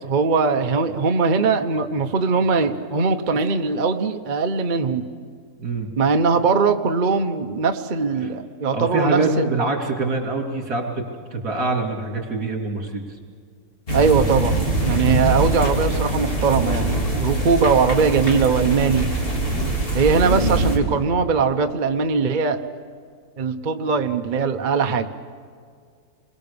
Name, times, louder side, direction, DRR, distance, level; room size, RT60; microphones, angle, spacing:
voice 1, 0.0-5.0 6.0-9.7 13.9-14.6 14.8-19.1 19.9-22.6 23.4-25.1, right 5 dB, 40° right, 6 dB, 0.7 m, -20 dB
voice 2, 5.6-5.9 8.2-8.3 8.7-11.1 11.3-13.1 19.5-19.7, right 3 dB, 60° right, 1 dB, 3.6 m, -25 dB
sound 1, 13.9-20.8, right 1 dB, 30° left, 3.5 m, -23 dB
28.5 x 22.0 x 6.9 m, 2.1 s
omnidirectional pair, 1.9 m